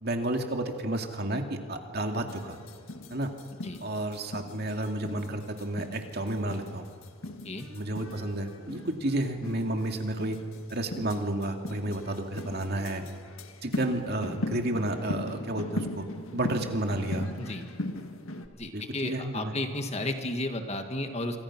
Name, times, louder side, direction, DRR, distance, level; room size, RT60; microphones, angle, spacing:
voice 1, 0.0-2.6 3.1-3.3 3.8-6.9 7.7-10.4 10.7-13.0 13.6-16.1 16.3-17.3 18.7-19.6, right 1 dB, 50° right, 4 dB, 2.4 m, -31 dB
sound 1, 2.3-18.5, left 1 dB, 80° left, 1.7 m, -39 dB
voice 2, 18.5-21.4, left 1 dB, 30° left, 6 dB, 1.8 m, -33 dB
27.5 x 25.0 x 6.1 m, 2.2 s
head